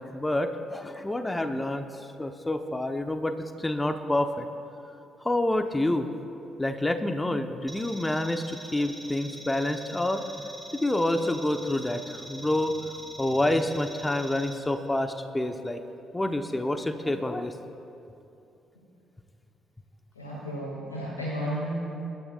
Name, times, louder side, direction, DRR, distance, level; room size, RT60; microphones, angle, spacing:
voice 1, 0.0-1.9 2.2-4.5 5.2-6.1 6.6-10.2 10.8-12.9 13.2-15.8 16.1-17.5, left 1 dB, 15° left, 7 dB, 1.0 m, -28 dB
sound 1, 7.7-14.5, right 2 dB, 20° right, 2.7 m, -44 dB
voice 2, 20.1-21.8, equal, 85° left, -8 dB, 2.4 m, -33 dB
25.5 x 12.5 x 2.5 m, 2.8 s
figure-of-eight pair, 40°, 0 cm